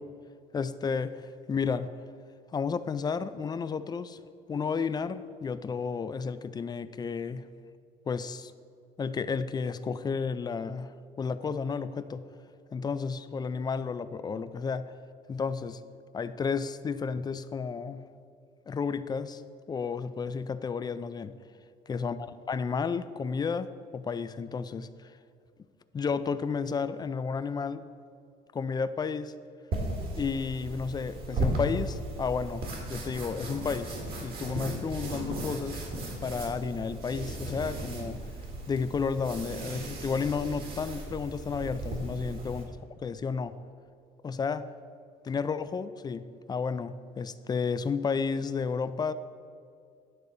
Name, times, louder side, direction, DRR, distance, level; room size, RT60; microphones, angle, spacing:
voice 1, 0.5-1.9 2.5-4.2 4.5-7.4 8.1-8.5 9.0-12.2 12.7-14.9 15.3-15.8 16.1-18.0 18.7-19.4 19.7-21.4 21.9-22.2 22.5-24.9 25.9-27.8 28.5-29.3 30.2-35.8 36.2-38.2 38.7-42.7 43.0-43.6 44.2-44.7 45.2-49.1, left 5 dB, 25° left, 13 dB, 0.3 m, -32 dB
sound 1, 29.7-42.6, right 2 dB, 65° right, 1.9 m, -36 dB
10.5 x 4.0 x 6.8 m, 2.3 s
cardioid pair, 110°, 17 cm